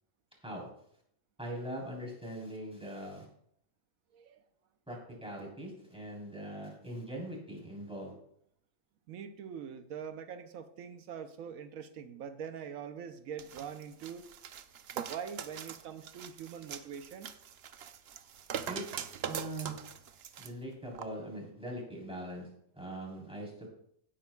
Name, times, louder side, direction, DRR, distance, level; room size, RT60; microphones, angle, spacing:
voice 1, 1.4-3.3 4.9-8.1 18.7-19.8 20.4-22.5 22.7-23.7, right 1 dB, 5° right, -3 dB, 3.7 m, -41 dB
voice 2, 4.1-4.4 9.1-14.3 14.9-17.3, right 7 dB, 85° right, 9 dB, 1.1 m, -43 dB
sound 1, 13.4-20.5 21.0-21.1, right 8 dB, 60° right, 0.8 m, -42 dB
16.5 x 8.8 x 2.3 m, 0.71 s
omnidirectional pair, 1.4 m